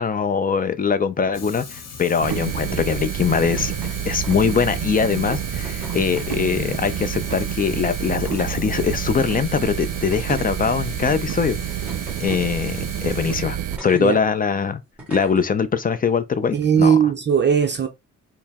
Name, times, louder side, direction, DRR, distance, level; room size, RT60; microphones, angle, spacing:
voice 1, 0.0-3.7 4.1-11.6 12.2-14.8 15.1-17.0, left 6 dB, 30° left, 0.4 m, -22 dB
Fire, 1.3-13.4, left 5 dB, 55° left, 0.7 m, -39 dB
sound 1, 2.2-13.8, right 11 dB, 85° right, 0.5 m, -28 dB
sound 2, 3.6-4.0 4.2-4.7 5.6-6.3 7.4-7.5 8.1-8.6 9.3-9.4 10.1-11.0 11.9-12.5 13.7-14.0 15.0-15.4 16.5-16.7, right 1 dB, 5° right, 1.7 m, -41 dB
voice 2, 16.5-17.9, right 7 dB, 35° right, 0.5 m, -18 dB
4.5 x 2.0 x 3.5 m
wide cardioid pair, 160°, 31 cm